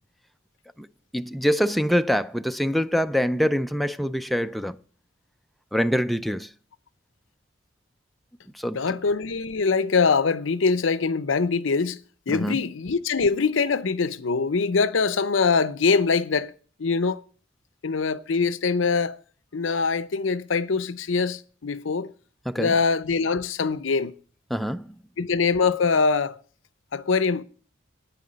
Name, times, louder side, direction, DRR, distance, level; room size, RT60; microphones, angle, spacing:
voice 1, 1.1-4.8 5.7-6.5 8.6-8.8 12.3-12.6 22.5-22.7 24.5-24.9, equal, ahead, 0.4 m, -24 dB
voice 2, 8.7-12.0 12.3-16.5 16.8-17.2 17.8-19.2 19.5-22.1 22.6-24.1 25.2-26.4 26.9-27.4, left 4 dB, 85° left, 0.6 m, -23 dB
9.5 x 9.5 x 5.1 m
head